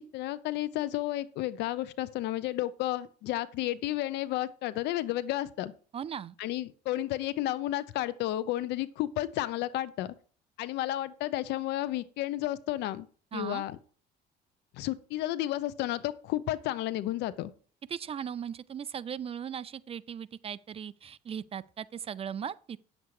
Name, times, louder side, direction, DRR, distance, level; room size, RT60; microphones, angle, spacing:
voice 1, 0.0-5.7 6.4-10.1 10.6-13.1 13.3-13.8 14.7-17.5, left 14 dB, 85° left, 0.8 m, -32 dB
voice 2, 5.9-6.3 13.3-13.6 17.9-22.8, right 8 dB, 35° right, 0.5 m, -38 dB
9.5 x 7.4 x 4.8 m
cardioid pair, 110°, 17 cm